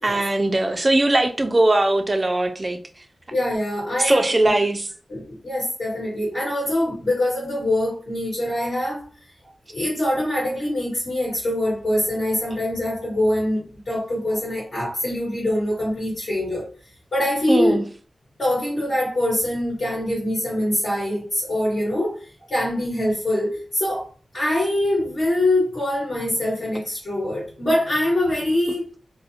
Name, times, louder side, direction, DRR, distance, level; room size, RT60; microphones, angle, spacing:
voice 1, 0.0-2.8 4.0-4.9 17.5-17.8, right 2 dB, 30° right, 0.3 m, -20 dB
voice 2, 3.3-4.5 5.1-9.0 9.7-16.7 17.1-17.8 18.4-22.2 22.5-24.1 24.3-28.9, left 1 dB, 45° left, 1.4 m, -24 dB
2.4 x 2.0 x 2.7 m
wide cardioid pair, 125°, 0 cm